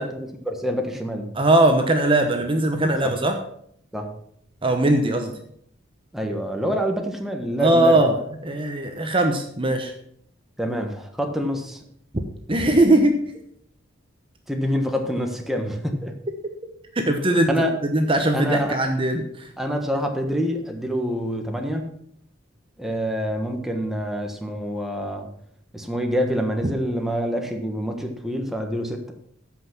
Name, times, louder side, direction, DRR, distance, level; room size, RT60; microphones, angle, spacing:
voice 1, 0.0-1.3 3.0-3.1 3.9-4.1 6.1-8.0 10.6-11.8 14.5-16.1 17.5-17.8 18.3-18.8 19.6-21.9 22.8-25.3 25.7-29.1, equal, ahead, 3 dB, 1.3 m, -26 dB
voice 2, 1.3-3.4 4.6-5.3 7.6-9.9 12.5-13.2 16.9-17.5 17.8-19.5, right 1 dB, 25° right, 5 dB, 1.0 m, -20 dB
14.0 x 5.7 x 6.0 m, 0.68 s
head